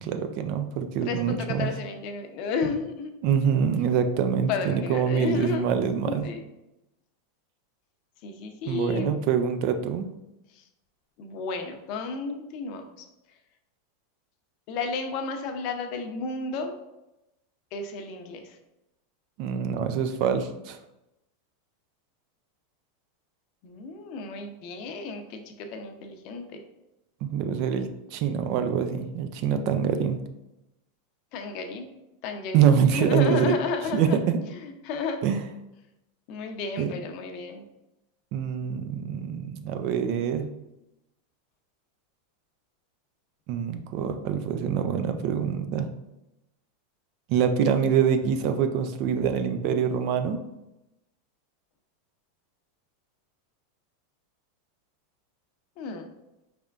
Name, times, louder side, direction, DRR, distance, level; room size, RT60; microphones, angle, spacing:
voice 1, 0.0-1.7 3.2-6.3 8.7-10.1 19.4-20.8 27.2-30.2 32.5-33.6 33.9-34.4 35.2-35.4 36.8-36.9 38.3-40.5 43.5-45.9 47.3-50.4, right 7 dB, 55° right, 8 dB, 0.4 m, -25 dB
voice 2, 1.0-3.1 4.5-5.7 6.0-6.4 8.2-9.2 10.5-10.6 11.2-13.1 14.7-16.8 17.7-18.6 23.6-26.6 31.3-31.9 32.2-34.2 34.5-35.2 36.3-37.6 55.8-56.1, left 4 dB, 55° left, 5 dB, 0.6 m, -32 dB
4.3 x 3.4 x 2.4 m, 0.92 s
hypercardioid pair, 100°, 0 cm